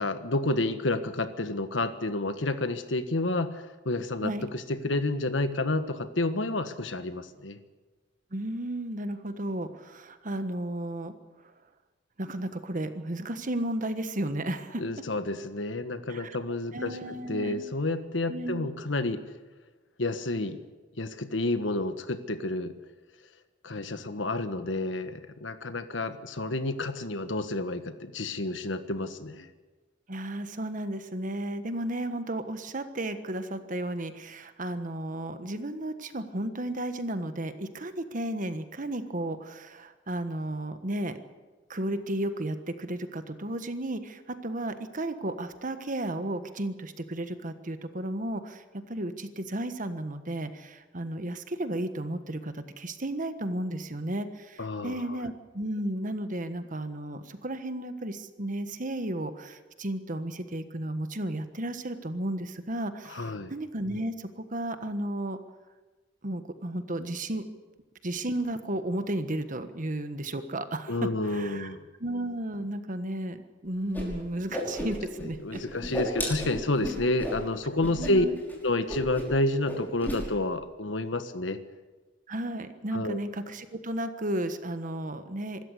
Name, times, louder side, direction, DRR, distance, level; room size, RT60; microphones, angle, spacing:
voice 1, 0.0-7.6 14.8-17.0 17.3-19.2 20.0-20.6 21.0-22.7 23.6-29.5 54.6-55.2 63.1-63.5 70.9-71.8 75.2-78.3 78.6-81.6 82.9-83.2, left 2 dB, 85° left, 10 dB, 1.5 m, -30 dB
voice 2, 8.3-11.1 11.4-11.5 12.2-14.8 16.1-16.4 16.7-17.6 18.3-18.7 30.1-41.2 41.7-65.4 66.2-67.4 68.0-71.7 72.0-75.6 78.0-78.3 82.3-85.6, right 1 dB, 45° right, 10 dB, 1.4 m, -33 dB
Whoosh swoosh swish, 73.9-74.0 74.3-75.2 75.5-77.4 77.8-78.1 78.4-78.5 78.9-79.4 79.6-80.2, equal, 10° left, 5.6 m, -33 dB
24.5 x 13.5 x 8.3 m, 1.3 s
head